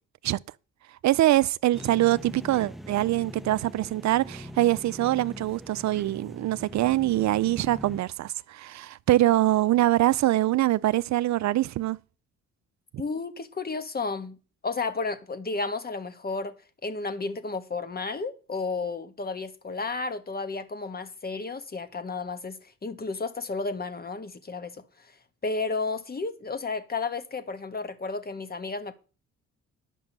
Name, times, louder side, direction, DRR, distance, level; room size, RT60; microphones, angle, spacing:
voice 1, 1.0-12.0, right 15 dB, 65° right, 0.5 m, -24 dB
sound 1, 1.7-8.0, equal, ahead, 0.7 m, -42 dB
voice 2, 13.0-14.4 14.6-16.5 16.8-24.8 25.4-28.9, left 3 dB, 30° left, 1.6 m, -32 dB
11.0 x 6.2 x 7.4 m
cardioid pair, 90°, 30 cm